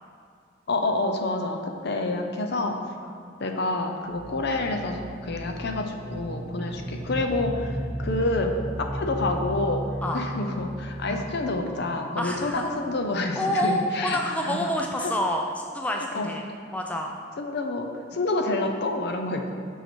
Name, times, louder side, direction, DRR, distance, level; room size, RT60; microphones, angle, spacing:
voice 1, 0.7-2.8 3.4-9.8 10.1-15.1 16.1-16.3 17.4-19.5, left 2 dB, 55° left, 4 dB, 0.6 m, -28 dB
sound 1, 4.1-12.7, equal, 10° right, 0.8 m, -35 dB
voice 2, 12.2-12.6 13.3-16.4 16.7-17.2, equal, 5° left, 1 dB, 0.3 m, -28 dB
5.8 x 5.5 x 4.4 m, 2.3 s
head